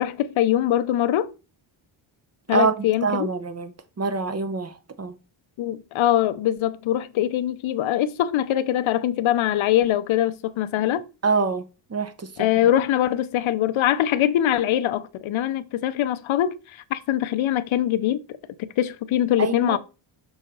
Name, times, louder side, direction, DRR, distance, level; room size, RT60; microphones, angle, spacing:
voice 1, 0.0-1.3 2.5-3.3 5.6-11.0 12.4-16.5 16.9-18.2 18.6-19.8, left 12 dB, 70° left, 0.6 m, -22 dB
voice 2, 2.5-3.7 4.0-5.2 11.2-11.6 11.9-12.3 19.4-19.8, right 4 dB, 30° right, 0.7 m, -25 dB
6.2 x 4.1 x 3.7 m
cardioid pair, 120°, 49 cm